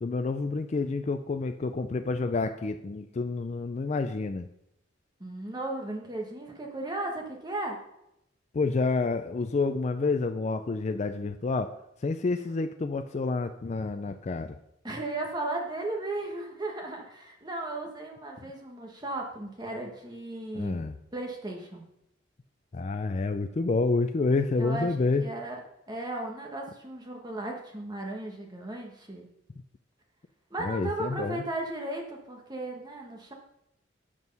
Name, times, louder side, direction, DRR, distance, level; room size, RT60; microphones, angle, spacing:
voice 1, 0.0-4.5 8.5-11.7 12.0-14.6 20.5-21.0 22.7-25.3 30.6-31.4, left 3 dB, 35° left, 7 dB, 0.4 m, -29 dB
voice 2, 5.2-7.8 14.8-20.8 21.1-21.9 24.6-24.9 25.2-25.5 25.9-29.3 30.5-33.3, right 2 dB, 20° right, 1 dB, 1.3 m, -35 dB
7.4 x 6.2 x 5.4 m, 0.81 s
head